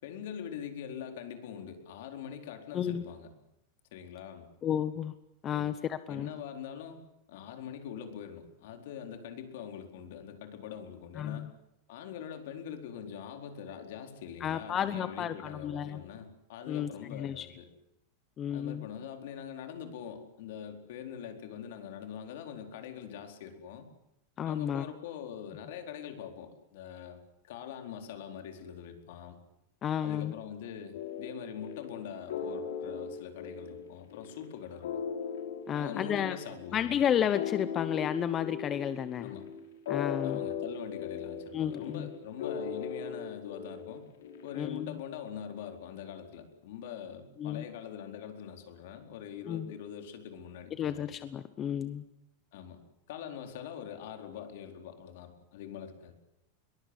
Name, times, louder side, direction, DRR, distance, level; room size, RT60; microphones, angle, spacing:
voice 1, 0.0-3.3 3.9-4.5 5.5-5.7 6.1-7.0 7.3-11.5 11.9-17.7 18.5-23.9 24.5-29.4 30.0-35.0 35.7-36.9 39.2-39.5 40.2-44.1 44.4-51.0 52.5-52.8 53.1-56.1, left 8 dB, 65° left, 6 dB, 4.3 m, -43 dB
voice 2, 4.6-5.1 5.4-6.3 11.2-11.5 14.4-16.0 16.7-17.5 18.4-18.9 24.4-24.8 29.8-30.3 35.7-36.4 36.7-39.3 39.9-40.4 41.5-42.1 44.5-45.0 47.4-47.6 49.5-49.7 50.8-52.0, left 9 dB, 25° left, 12 dB, 0.9 m, -32 dB
sound 1, 30.9-44.7, left 7 dB, 85° left, 5.5 m, -38 dB
22.5 x 20.5 x 9.9 m, 0.84 s
supercardioid pair, 155°, 0 cm